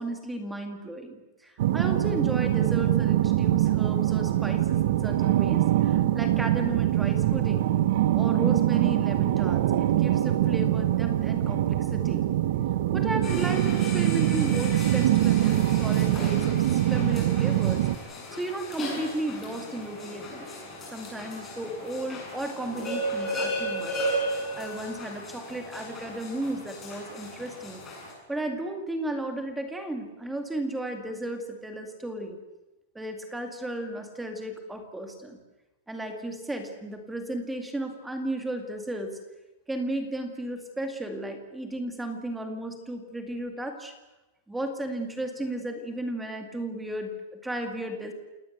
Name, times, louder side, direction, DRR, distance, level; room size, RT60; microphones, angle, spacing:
voice 1, 0.0-7.7 8.1-12.2 12.9-20.5 20.9-27.8 28.3-32.4 32.9-35.4 35.9-39.2 39.7-43.9 44.5-48.1, right 1 dB, 5° right, 5 dB, 2.2 m, -34 dB
sound 1, 1.6-18.0, right 13 dB, 50° right, 1.1 m, -23 dB
sound 2, 13.2-28.1, equal, 15° left, 6.9 m, -36 dB
28.0 x 18.5 x 8.1 m, 1.0 s
supercardioid pair, 180°, 0 cm